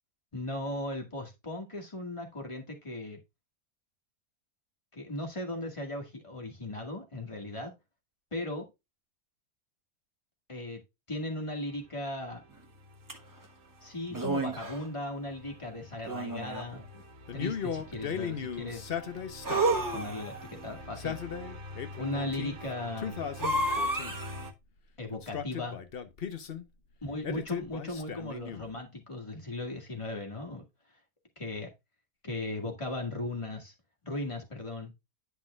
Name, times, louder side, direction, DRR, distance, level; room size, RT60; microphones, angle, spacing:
voice 1, 0.3-3.2 4.9-7.7 8.3-8.7 10.5-10.8 11.1-12.4 13.8-16.8 17.3-19.0 19.7-21.2 22.0-23.2 25.0-25.8 27.0-30.6 31.4-31.7 32.2-33.7 34.0-34.9, left 2 dB, 20° left, 2.0 m, -37 dB
sound 1, 11.7-24.5, left 1 dB, 65° right, 1.4 m, -47 dB
sound 2, 13.1-13.2 14.1-14.8 16.0-16.8 19.4-20.5 23.4-24.5, right 2 dB, 15° right, 1.1 m, -30 dB
Male speech man speaking, 17.3-19.8 20.8-22.5 23.0-24.3 25.1-26.6 27.2-28.7, left 7 dB, 45° left, 0.9 m, -37 dB
10.5 x 5.9 x 2.3 m
omnidirectional pair, 1.6 m